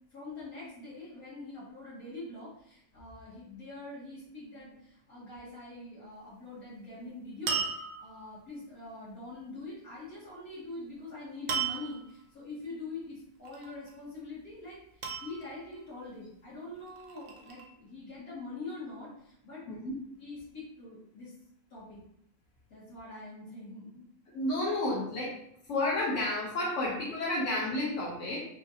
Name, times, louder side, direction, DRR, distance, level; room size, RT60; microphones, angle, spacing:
voice 1, 0.1-14.8 15.2-19.8 20.2-21.3 21.7-22.0 22.7-24.1, left 2 dB, 80° left, -10 dB, 1.9 m, -44 dB
sound 1, 7.5-8.4 11.5-12.1 13.4-14.0 15.0-15.8 16.8-17.7, right 6 dB, 70° right, 1.0 m, -35 dB
voice 2, 24.3-25.4 25.7-28.4, left 1 dB, 60° left, -5 dB, 1.1 m, -31 dB
5.0 x 2.4 x 2.7 m, 0.73 s
omnidirectional pair, 1.5 m